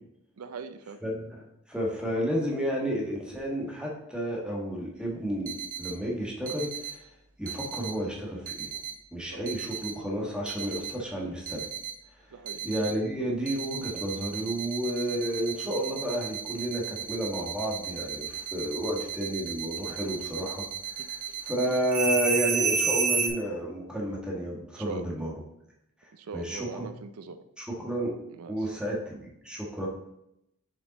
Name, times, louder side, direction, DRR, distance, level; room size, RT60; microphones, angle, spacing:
voice 1, 0.4-1.0 9.3-9.4 12.3-12.7 21.3-21.4 24.8-25.1 26.1-27.4 28.3-28.5, right 5 dB, 85° right, 10 dB, 0.5 m, -41 dB
voice 2, 1.0-7.0 7.4-8.7 9.1-11.6 12.6-25.3 26.0-26.9 27.6-28.2 28.5-29.9, right 1 dB, 5° right, -2 dB, 1.3 m, -31 dB
sound 1, 5.5-5.9 6.5-6.9 7.5-7.9 8.5-8.9 9.5-9.9 10.5-10.9 11.5-11.9 12.5-12.9 13.5-23.3, right 6 dB, 40° right, 0.9 m, -32 dB
6.8 x 5.1 x 4.0 m, 0.81 s
head